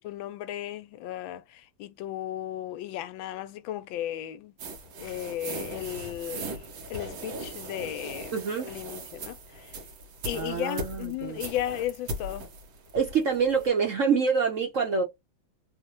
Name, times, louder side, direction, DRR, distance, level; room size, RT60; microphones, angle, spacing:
voice 1, 0.0-4.5 5.0-8.3 8.7-9.8 10.2-12.5, left 12 dB, 85° left, 1.3 m, -35 dB
sound 1, 4.6-13.7, right 1 dB, 90° right, 1.9 m, -39 dB
voice 2, 8.3-8.7 10.3-11.4 12.9-15.0, right 5 dB, 55° right, 0.9 m, -26 dB
4.1 x 2.1 x 2.9 m
omnidirectional pair, 2.2 m